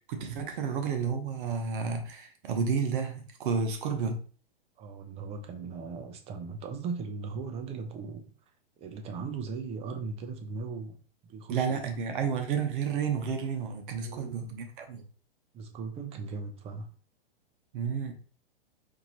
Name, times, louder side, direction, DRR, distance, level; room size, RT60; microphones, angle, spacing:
voice 1, 0.1-4.2 11.5-15.0 17.7-18.1, right 6 dB, 55° right, 0.9 m, -31 dB
voice 2, 4.8-8.2 8.8-11.0 11.2-11.9 14.0-14.5 15.5-16.9, right 4 dB, 20° right, 0.5 m, -38 dB
4.5 x 2.7 x 2.9 m
hypercardioid pair, 130°, 30 cm